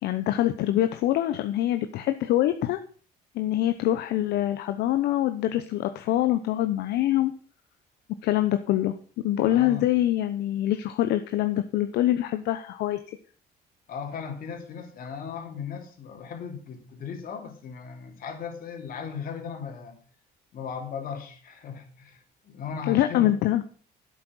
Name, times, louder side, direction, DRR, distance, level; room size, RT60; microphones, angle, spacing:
voice 1, 0.0-2.8 3.3-7.3 8.2-8.9 9.2-13.0 22.9-23.6, left 13 dB, 75° left, 9 dB, 0.9 m, -24 dB
voice 2, 9.5-9.9 13.9-20.0 20.5-23.3, left 6 dB, 60° left, 4 dB, 3.3 m, -37 dB
11.0 x 8.6 x 6.2 m, 0.42 s
cardioid pair, 110°, 17 cm